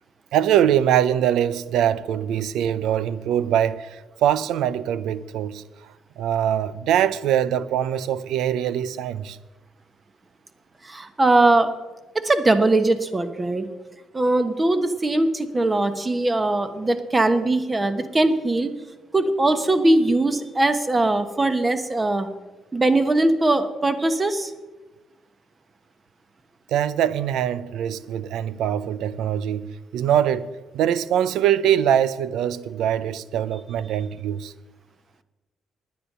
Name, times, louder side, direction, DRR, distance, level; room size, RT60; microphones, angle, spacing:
voice 1, 0.3-5.6 6.2-9.4 26.7-34.5, right 10 dB, 85° right, 0.5 m, -23 dB
voice 2, 10.8-11.7 12.1-13.7 14.1-18.7 19.1-22.3 22.7-24.5, right 2 dB, 25° right, 1.1 m, -20 dB
10.0 x 9.6 x 6.7 m
cardioid pair, 90°, 0 cm